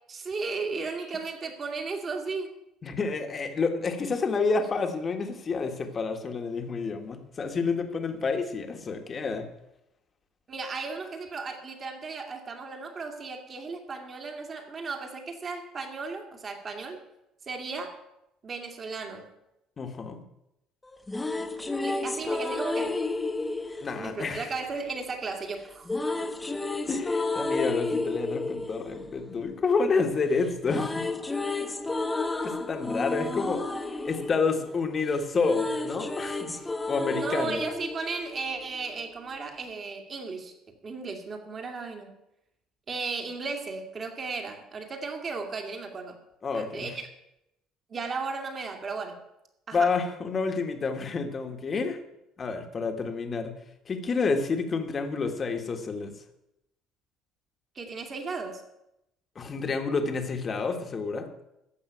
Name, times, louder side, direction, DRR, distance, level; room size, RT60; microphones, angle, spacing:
voice 1, 0.1-2.5 10.5-17.0 17.5-18.0 18.4-19.3 21.8-23.0 24.0-25.9 37.1-40.5 40.8-42.1 42.9-46.2 46.5-47.1 47.9-49.2 49.7-49.9 57.8-58.6, right 4 dB, 30° right, 4 dB, 2.2 m, -35 dB
voice 2, 2.8-9.5 19.8-20.2 23.8-24.5 26.9-31.1 32.4-33.6 34.0-36.6 36.9-37.6 46.4-46.9 49.7-52.0 52.4-53.5 53.9-56.1 59.3-61.3, left 4 dB, 30° left, 6 dB, 1.6 m, -29 dB
sound 1, 20.8-25.0 25.9-30.1 30.4-38.9, left 2 dB, 10° left, 0.9 m, -32 dB
14.5 x 6.0 x 9.1 m, 0.87 s
cardioid pair, 140°, 0 cm